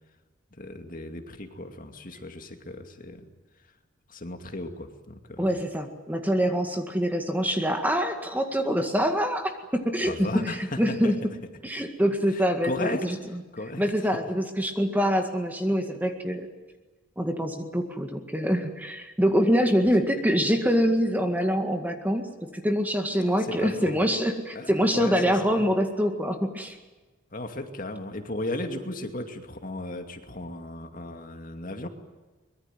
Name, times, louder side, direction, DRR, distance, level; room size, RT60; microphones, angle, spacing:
voice 1, 0.6-3.3 4.1-5.5 10.0-11.3 12.3-13.1 13.5-13.8 23.2-24.0 24.5-25.7 27.3-31.9, left 1 dB, 40° left, 5 dB, 2.4 m, -35 dB
voice 2, 5.4-11.2 11.6-13.2 13.8-16.5 17.2-22.3 22.5-26.8, equal, 10° right, 5 dB, 1.9 m, -25 dB
24.0 x 22.0 x 9.2 m, 1.2 s
head